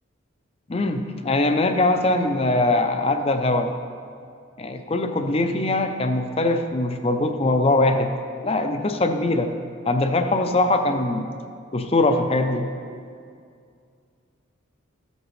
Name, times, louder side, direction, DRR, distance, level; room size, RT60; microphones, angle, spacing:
voice 1, 0.7-3.7 4.6-8.1 8.4-9.5 9.9-11.3 11.7-12.7, left 2 dB, 30° left, 7 dB, 0.5 m, -22 dB
13.5 x 8.0 x 3.2 m, 2.3 s
head